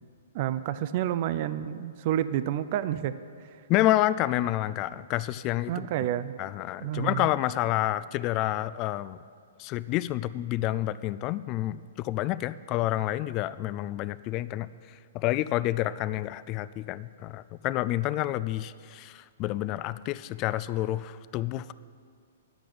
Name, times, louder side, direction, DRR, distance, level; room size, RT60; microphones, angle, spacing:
voice 1, 0.3-3.2 5.7-6.4 6.8-7.3, right 11 dB, 45° right, 13 dB, 0.4 m, -29 dB
voice 2, 3.7-5.9 6.4-9.2 9.6-21.7, left 15 dB, 35° left, 16 dB, 0.3 m, -29 dB
10.5 x 6.0 x 8.7 m, 2.1 s
hypercardioid pair, 130°, 0 cm